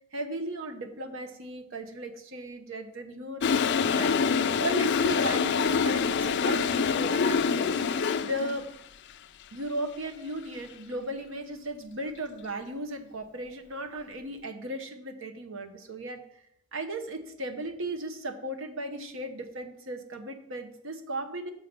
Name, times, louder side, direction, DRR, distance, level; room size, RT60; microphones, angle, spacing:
voice 1, 0.1-4.2 4.6-8.7 9.5-16.2 16.7-21.5, right 1 dB, 70° right, 6 dB, 1.0 m, -36 dB
Toilet flush, 3.4-8.6, left 5 dB, 55° left, 0.4 m, -25 dB
7.3 x 5.7 x 5.2 m, 0.75 s
head